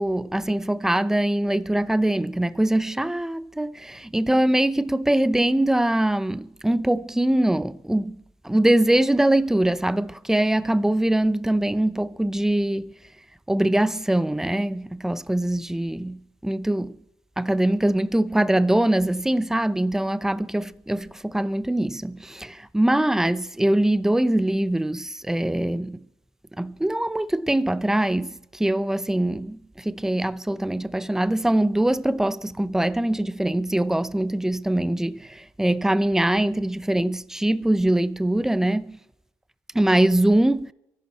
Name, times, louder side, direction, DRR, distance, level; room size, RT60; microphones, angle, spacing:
voice 1, 0.0-8.2 8.4-12.9 13.5-17.0 17.4-26.0 26.6-39.0 39.7-40.7, right 1 dB, 5° right, 0.7 m, -23 dB
25.0 x 11.5 x 3.1 m
supercardioid pair, 60°, 8 cm